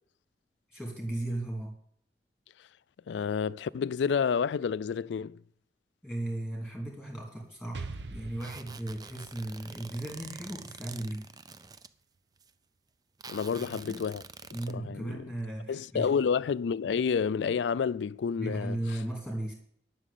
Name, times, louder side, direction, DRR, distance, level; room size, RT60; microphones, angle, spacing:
voice 1, 0.7-1.7 6.0-11.2 13.5-14.0 14.5-16.1 18.4-19.5, right 1 dB, ahead, 2.7 m, -36 dB
voice 2, 3.1-5.4 13.3-14.2 14.7-15.2 15.7-18.8, left 6 dB, 85° left, 0.3 m, -29 dB
Explosion, 7.7-11.5, right 3 dB, 80° right, 0.8 m, -45 dB
sound 1, 8.4-11.9 12.4-12.5 13.2-14.7, right 5 dB, 20° right, 0.4 m, -47 dB
11.0 x 6.2 x 8.4 m
head